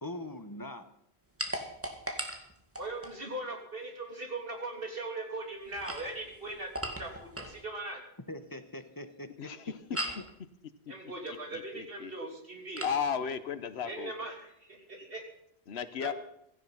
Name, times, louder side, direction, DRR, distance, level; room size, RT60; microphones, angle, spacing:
voice 1, 0.0-0.9 8.3-9.5, left 1 dB, 20° left, 9 dB, 1.2 m, -42 dB
sound 1, 1.4-3.2 5.6-7.6 9.9-10.3 12.8-13.0, equal, 15° right, 2.0 m, -38 dB
voice 2, 2.8-6.7 7.0-8.0 10.9-12.9 13.8-15.2 16.0-16.1, right 2 dB, 60° right, 2 dB, 3.4 m, -39 dB
voice 3, 9.4-9.8 11.5-12.1 12.8-14.1 15.7-16.1, left 7 dB, 85° left, 12 dB, 1.2 m, -34 dB
16.5 x 14.0 x 5.7 m, 0.76 s
omnidirectional pair, 1.0 m